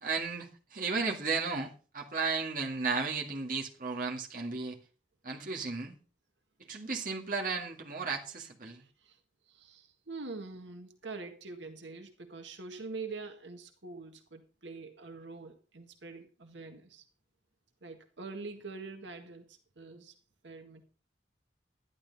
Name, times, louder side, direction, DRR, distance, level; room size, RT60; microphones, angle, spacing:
voice 1, 0.0-4.8 5.2-6.0 6.7-8.8, right 4 dB, 45° right, 0 dB, 2.1 m, -34 dB
voice 2, 8.8-17.1 17.8-20.2 20.4-20.9, right 3 dB, 85° right, 5 dB, 1.8 m, -45 dB
12.0 x 11.5 x 4.1 m, 0.36 s
head